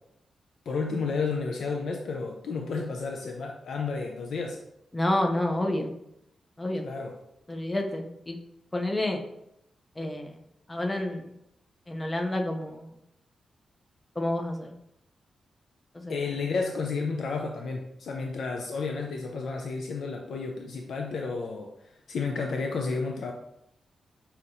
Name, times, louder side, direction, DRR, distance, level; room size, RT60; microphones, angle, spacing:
voice 1, 0.7-4.6 6.8-7.2 16.1-21.7 22.1-23.3, left 4 dB, 70° left, 1 dB, 0.4 m, -31 dB
voice 2, 4.9-5.9 6.6-6.9 7.5-8.4 8.7-9.2 10.0-10.3 10.7-11.3 11.9-12.9 14.2-14.8 15.9-16.2, left 1 dB, 15° left, 3 dB, 0.5 m, -29 dB
5.6 x 2.8 x 2.5 m, 0.81 s
wide cardioid pair, 150°, 0 cm